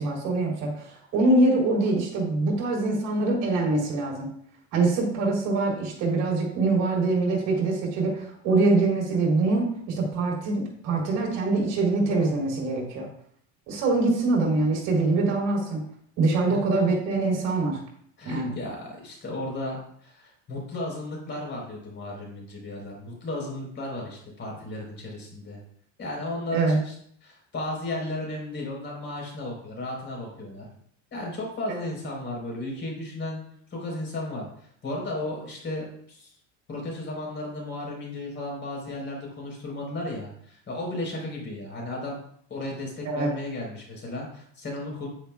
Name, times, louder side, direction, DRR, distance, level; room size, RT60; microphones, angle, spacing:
voice 1, 0.0-4.3 4.7-13.1 13.7-15.8 16.2-17.8 18.2-18.5 26.5-26.8 31.7-31.8 43.1-43.3, right 3 dB, 55° right, -1 dB, 3.7 m, -24 dB
voice 2, 18.2-25.6 26.0-26.9 27.2-30.6 31.1-33.4 33.7-36.3 36.7-42.2 42.5-45.1, left 1 dB, 30° left, -1 dB, 4.2 m, -34 dB
10.5 x 9.6 x 2.4 m, 0.65 s
cardioid pair, 150°, 38 cm